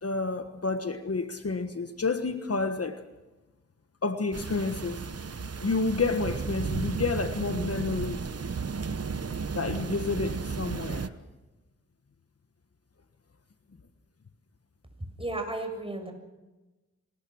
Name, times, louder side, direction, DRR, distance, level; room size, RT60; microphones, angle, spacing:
voice 1, 0.0-3.0 4.0-5.0 5.4-8.2 9.5-11.1, left 3 dB, 55° left, 9 dB, 1.5 m, -30 dB
sound 1, 4.3-11.1, right 5 dB, 55° right, 1.1 m, -34 dB
voice 2, 15.0-16.1, right 2 dB, 20° right, 4 dB, 7.1 m, -34 dB
25.0 x 20.0 x 6.4 m, 1.1 s
cardioid pair, 45°, 29 cm